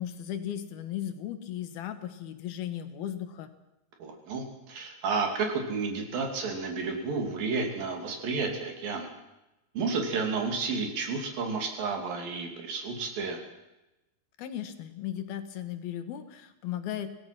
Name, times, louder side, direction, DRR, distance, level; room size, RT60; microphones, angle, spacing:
voice 1, 0.0-3.5 14.4-17.1, left 11 dB, 90° left, 10 dB, 3.4 m, -36 dB
voice 2, 4.0-9.1 9.7-13.4, right 4 dB, 75° right, 3 dB, 4.6 m, -31 dB
25.5 x 17.0 x 6.1 m, 0.97 s
omnidirectional pair, 4.2 m